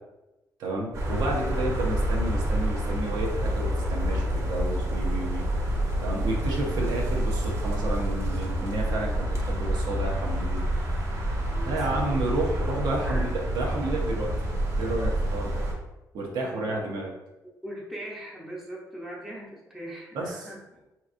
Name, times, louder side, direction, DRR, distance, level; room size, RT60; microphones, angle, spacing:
voice 1, 0.6-5.5 6.0-10.6 11.6-14.3 14.8-15.6 16.1-17.1 20.1-20.5, right 2 dB, 85° right, -1 dB, 0.8 m, -31 dB
sound 1, 0.9-15.7, right 1 dB, 50° right, 0.9 m, -28 dB
voice 2, 11.5-12.2 13.0-13.2 16.4-16.7 17.6-20.6, right 1 dB, 5° right, -4 dB, 0.8 m, -40 dB
4.5 x 2.9 x 2.5 m, 1.0 s
cardioid pair, 155°, 7 cm